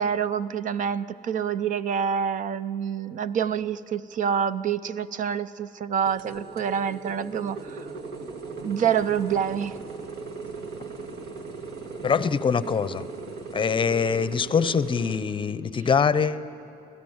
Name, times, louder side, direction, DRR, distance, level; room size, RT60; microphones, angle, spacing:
voice 1, 0.0-7.9 8.6-9.8, right 8 dB, 50° right, 15 dB, 0.6 m, -27 dB
sound 1, 6.1-15.2, right 4 dB, 75° right, 2.1 m, -38 dB
voice 2, 12.0-13.0 13.5-16.5, left 6 dB, 30° left, 15 dB, 0.6 m, -24 dB
25.0 x 16.5 x 7.9 m, 2.7 s
cardioid pair, 110°, 17 cm